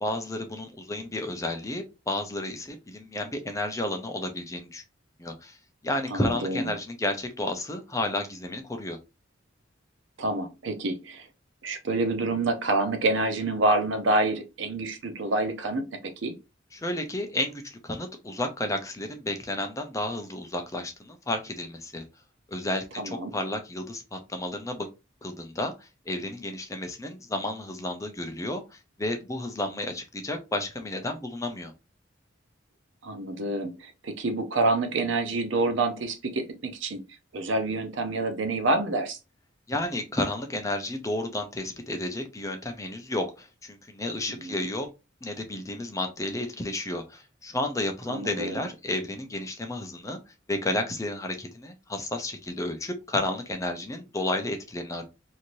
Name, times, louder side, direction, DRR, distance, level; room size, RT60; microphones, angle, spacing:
voice 1, 0.0-4.8 5.2-5.6 5.8-9.0 16.7-22.0 22.5-24.9 25.2-31.7 39.7-44.9 45.2-50.2 50.5-55.0, left 1 dB, 15° left, 0.5 m, -32 dB
voice 2, 6.1-6.7 10.2-11.3 11.6-16.4 23.0-23.3 33.0-37.0 37.3-39.2 44.3-44.7 48.1-48.6, right 2 dB, 70° right, 0.6 m, -27 dB
3.1 x 2.7 x 2.6 m
head